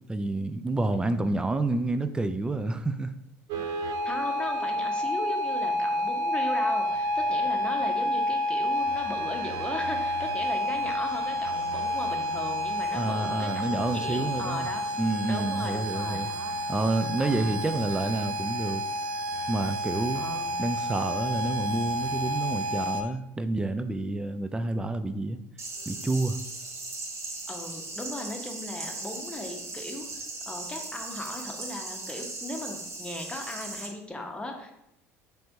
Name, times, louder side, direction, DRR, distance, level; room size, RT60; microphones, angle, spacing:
voice 1, 0.1-3.1 12.9-14.7 15.0-16.3 16.7-18.8 19.5-20.2 20.6-25.4 25.9-26.4, right 2 dB, 10° right, 10 dB, 0.3 m, -29 dB
voice 2, 0.9-1.4 4.0-14.8 15.3-16.5 17.2-17.5 20.1-20.6 27.5-34.8, left 1 dB, 15° left, 2 dB, 0.8 m, -38 dB
sound 1, 3.5-23.0, equal, 55° right, 0.6 m, -30 dB
sound 2, 25.6-33.9, right 2 dB, 40° right, 1.2 m, -38 dB
4.3 x 3.3 x 2.7 m, 0.82 s
hypercardioid pair, 65°, 8 cm